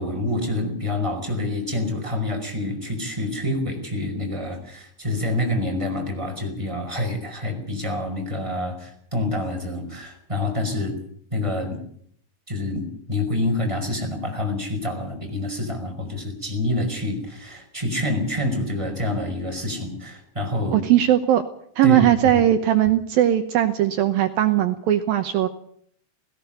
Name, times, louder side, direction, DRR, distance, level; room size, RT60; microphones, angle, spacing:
voice 1, 0.0-11.0 11.3-11.8 12.5-20.8 21.8-22.1, left 1 dB, 5° right, 2 dB, 4.7 m, -27 dB
voice 2, 20.7-21.4 21.8-25.5, right 12 dB, 75° right, 9 dB, 2.3 m, -19 dB
18.0 x 16.5 x 9.2 m, 0.64 s
omnidirectional pair, 5.2 m